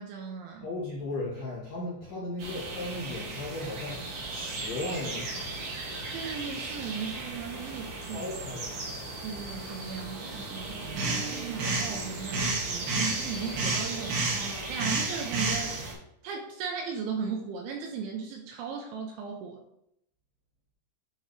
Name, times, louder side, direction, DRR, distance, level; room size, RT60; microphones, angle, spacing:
voice 1, 0.0-0.7 6.1-8.3 9.2-14.2 14.7-15.8 16.2-19.6, right 6 dB, 80° right, 2 dB, 2.8 m, -37 dB
voice 2, 0.6-5.6 8.0-8.8, left 2 dB, 75° left, -5 dB, 1.9 m, -36 dB
sound 1, 2.4-15.9, right 3 dB, 60° right, 2.8 m, -33 dB
11.0 x 4.0 x 3.2 m, 0.76 s
omnidirectional pair, 5.9 m